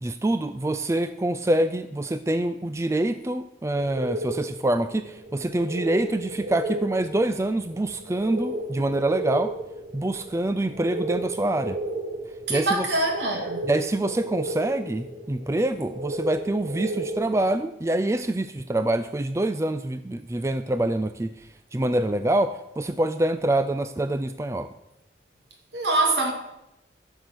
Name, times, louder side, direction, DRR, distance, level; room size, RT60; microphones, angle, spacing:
voice 1, 0.0-9.5 9.9-11.8 12.5-12.9 13.6-21.3 21.7-24.7, right 1 dB, 15° right, 0.4 m, -25 dB
sound 1, 3.7-17.5, right 2 dB, 55° right, 1.6 m, -34 dB
voice 2, 12.5-13.6 25.7-26.3, right 2 dB, 75° right, 2.5 m, -24 dB
14.5 x 6.8 x 6.1 m
head